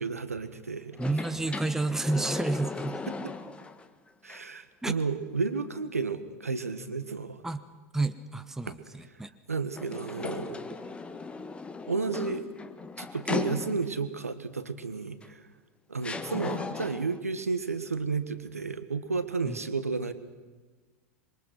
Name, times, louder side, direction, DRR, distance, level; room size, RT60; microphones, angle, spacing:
voice 1, 0.0-1.0 3.1-3.3 4.2-7.4 8.7-8.8 9.5-10.6 11.9-12.4 13.0-15.4 15.9-20.1, right 4 dB, 80° right, 11 dB, 1.5 m, -32 dB
sound 1, 0.9-3.9 4.3-4.4 9.8-14.1 15.2-15.3 16.0-17.2, left 4 dB, 15° left, 1.4 m, -37 dB
voice 2, 1.0-3.0 4.8-5.0 7.4-7.6 7.9-9.3 19.4-19.6, right 2 dB, 5° right, 9 dB, 1.2 m, -30 dB
26.0 x 22.5 x 6.1 m, 1.3 s
figure-of-eight pair, 85°, 8 cm